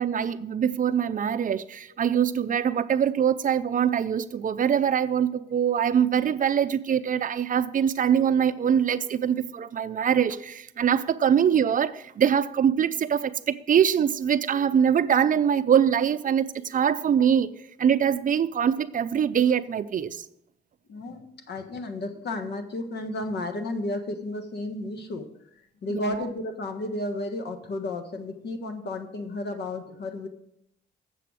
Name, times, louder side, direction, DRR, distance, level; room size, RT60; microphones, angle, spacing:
voice 1, 0.0-17.5 17.8-20.2 25.9-26.2, right 8 dB, 40° right, 0.5 m, -23 dB
voice 2, 20.9-25.3 25.8-30.3, left 2 dB, 55° left, 1.4 m, -33 dB
7.7 x 6.8 x 6.3 m
cardioid pair, 90°, 20 cm